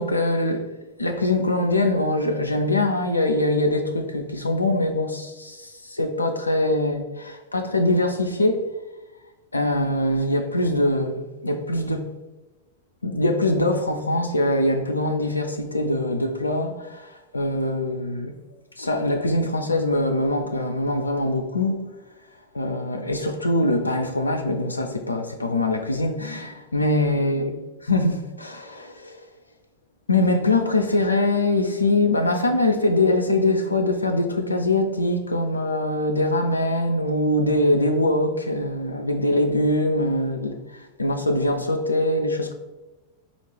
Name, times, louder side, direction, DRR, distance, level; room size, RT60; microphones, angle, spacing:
voice 1, 0.0-8.6 9.5-12.0 13.0-18.3 18.8-21.8 22.5-27.5 27.8-29.2 30.1-42.5, left 1 dB, 80° left, 0.3 m, -23 dB
4.2 x 2.5 x 3.2 m
figure-of-eight pair, 90°, 0 cm